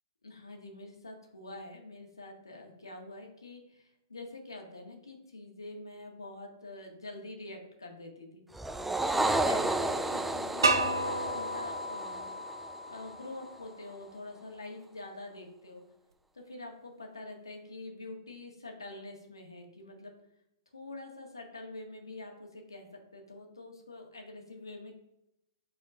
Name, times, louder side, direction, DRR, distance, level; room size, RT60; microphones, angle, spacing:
voice 1, 0.2-8.4 9.1-12.3 12.9-15.8 16.3-20.1 20.7-25.0, left 2 dB, 85° left, 2 dB, 1.6 m, -46 dB
sound 1, 8.5-13.1, right 2 dB, 5° right, 0.4 m, -32 dB
sound 2, 10.6-13.5, right 2 dB, 80° right, 1.0 m, -31 dB
5.0 x 4.2 x 5.3 m, 0.84 s
figure-of-eight pair, 115°, 2 cm